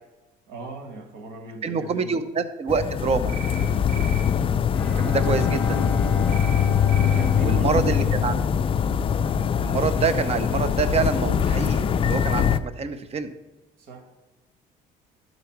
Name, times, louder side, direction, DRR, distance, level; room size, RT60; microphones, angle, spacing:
voice 1, 0.5-2.2 3.9-4.5 7.0-8.5 13.8-14.0, right 1 dB, 90° right, 4 dB, 1.7 m, -37 dB
voice 2, 1.6-3.4 5.0-5.9 7.4-8.3 9.6-13.3, right 5 dB, 35° right, 11 dB, 0.7 m, -26 dB
sound 1, 2.7-12.6, left 8 dB, 30° left, 0.4 m, -22 dB
sound 2, 3.3-3.6 3.9-4.2 6.3-6.6 6.9-7.2, right 6 dB, 70° right, 2.9 m, -38 dB
Bowed string instrument, 4.7-9.1, left 2 dB, 5° left, 0.7 m, -34 dB
11.5 x 4.0 x 5.9 m, 1.1 s
cardioid pair, 110°, 17 cm